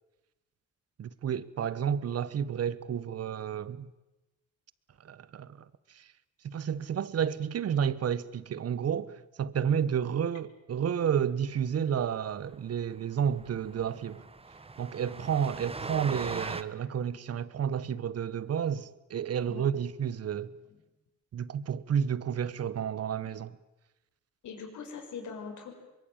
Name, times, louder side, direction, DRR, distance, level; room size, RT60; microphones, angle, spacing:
voice 1, 1.0-3.9 5.0-5.6 5.9-6.1 6.4-14.2 14.8-20.5 21.3-23.6, right 8 dB, 55° right, 1.3 m, -31 dB
Train, 12.0-12.1 12.4-12.5 12.8-12.9 13.3-16.6, right 3 dB, 20° right, 1.4 m, -40 dB
voice 2, 24.4-25.7, left 5 dB, 75° left, 6.0 m, -42 dB
24.0 x 22.0 x 8.9 m
cardioid pair, 90°, 30 cm